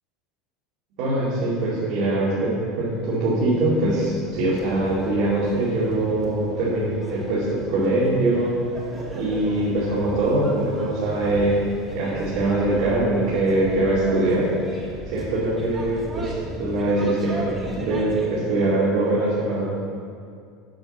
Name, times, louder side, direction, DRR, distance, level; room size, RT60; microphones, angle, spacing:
voice 1, 1.0-8.5 9.1-11.6 11.9-14.5 15.1-19.6, right 2 dB, 65° right, -9 dB, 2.5 m, -22 dB
sound 1, 2.8-18.3, right 1 dB, 15° right, 1.3 m, -38 dB
8.7 x 5.8 x 5.8 m, 2.3 s
cardioid pair, 155°, 0 cm